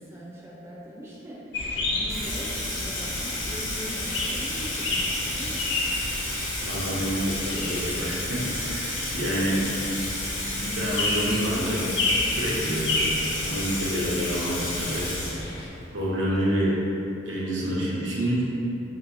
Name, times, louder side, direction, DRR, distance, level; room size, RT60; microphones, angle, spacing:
voice 1, 0.0-1.6 1.9-5.6, equal, 15° right, -6 dB, 0.4 m, -41 dB
sound 1, 1.5-15.7, left 2 dB, 70° left, 0.4 m, -31 dB
Water tap faucet / Sink (filling or washing), 2.1-15.8, left 1 dB, 90° left, 0.8 m, -32 dB
voice 2, 6.6-9.6 10.6-11.9 12.2-15.1 15.9-16.8 17.3-18.4, equal, 90° right, -6 dB, 0.7 m, -28 dB
3.0 x 2.9 x 2.6 m, 2.8 s
head